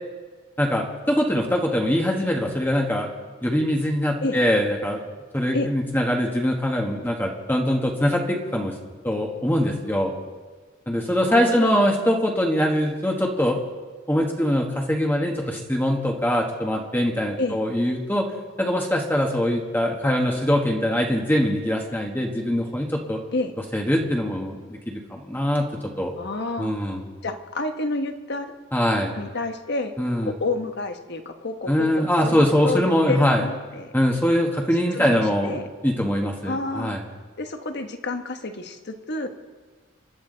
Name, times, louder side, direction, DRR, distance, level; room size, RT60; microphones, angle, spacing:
voice 1, 0.6-3.1 3.4-5.0 5.3-8.7 9.0-10.1 10.9-13.6 14.1-18.3 18.6-23.2 23.7-25.7 26.0-26.1 26.6-27.0 28.7-29.1 30.0-30.3 31.7-33.4 33.9-35.6 35.8-37.0, equal, 10° left, 0 dB, 1.5 m, -22 dB
voice 2, 11.1-11.9 17.4-17.6 23.3-23.5 26.2-26.7 27.2-28.5 29.1-29.9 30.2-33.9 34.9-35.7 36.4-37.0 37.4-39.3, left 2 dB, 55° left, 6 dB, 1.3 m, -29 dB
28.0 x 11.5 x 4.0 m, 1.4 s
head